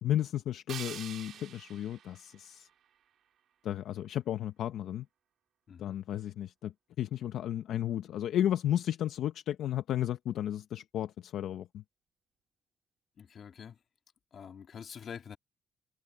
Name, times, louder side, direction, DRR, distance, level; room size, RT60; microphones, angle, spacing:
voice 1, 0.0-2.7 3.6-5.1 5.8-11.8, left 11 dB, 75° left, 0.8 m, -33 dB
sound 1, 0.7-3.7, right 9 dB, 70° right, 3.6 m, -47 dB
voice 2, 13.2-13.8 14.3-15.4, left 7 dB, 55° left, 2.2 m, -46 dB
cardioid pair, 90°, 0 cm